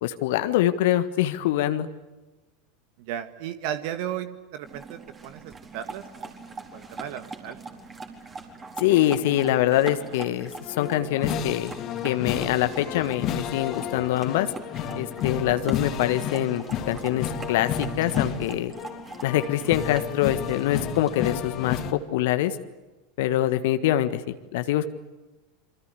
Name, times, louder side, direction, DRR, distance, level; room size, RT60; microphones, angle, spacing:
voice 1, 0.0-1.9 8.8-10.5 10.8-11.7 12.0-14.5 14.9-18.7 19.2-22.6 23.2-24.2 24.5-24.9, left 13 dB, 60° left, 10 dB, 1.5 m, -24 dB
voice 2, 3.0-7.6 23.3-23.5, right 10 dB, 55° right, 10 dB, 1.7 m, -35 dB
sound 1, 4.6-21.4, right 4 dB, 25° right, 4.4 m, -42 dB
sound 2, 10.5-21.9, left 8 dB, 45° left, 2.8 m, -32 dB
27.0 x 25.5 x 8.3 m, 1.2 s
figure-of-eight pair, 85°, 0 cm